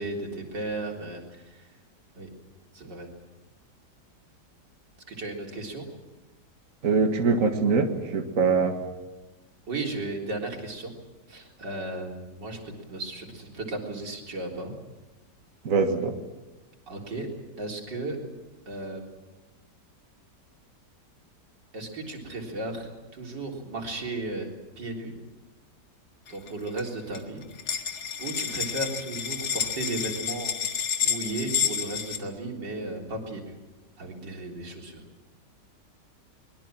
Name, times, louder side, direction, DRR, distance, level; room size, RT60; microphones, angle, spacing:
voice 1, 0.0-1.7 2.2-2.3 2.7-3.1 5.1-5.9 9.7-10.9 11.3-14.7 16.9-17.3 17.6-18.2 18.7-19.0 21.7-24.5 24.8-25.1 26.3-27.4 28.2-30.5 31.0-33.5 34.0-35.0, right 2 dB, 90° right, 0 dB, 4.4 m, -35 dB
voice 2, 6.8-8.7 15.6-16.2, right 4 dB, 50° right, 4 dB, 2.1 m, -23 dB
sound 1, 26.3-26.8 27.1-27.2 27.4-32.2, left 8 dB, 65° left, 2.3 m, -30 dB
23.5 x 21.5 x 7.5 m, 1.1 s
omnidirectional pair, 1.8 m